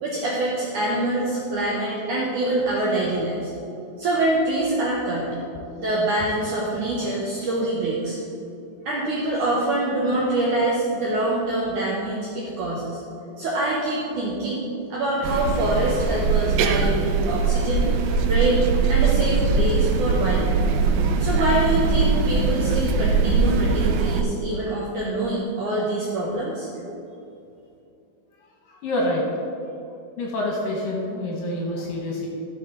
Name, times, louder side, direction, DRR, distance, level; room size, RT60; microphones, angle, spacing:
voice 1, 0.0-3.5 4.0-5.3 5.8-8.2 8.9-13.0 13.4-17.9 18.2-20.6 21.2-26.7, right 1 dB, 75° right, -5 dB, 1.9 m, -25 dB
sound 1, 15.2-24.2, right 4 dB, 90° right, 2.0 m, -21 dB
voice 2, 28.7-29.2 30.2-32.3, left 1 dB, 70° left, -2 dB, 2.4 m, -27 dB
13.5 x 6.2 x 3.9 m, 2.7 s
omnidirectional pair, 4.9 m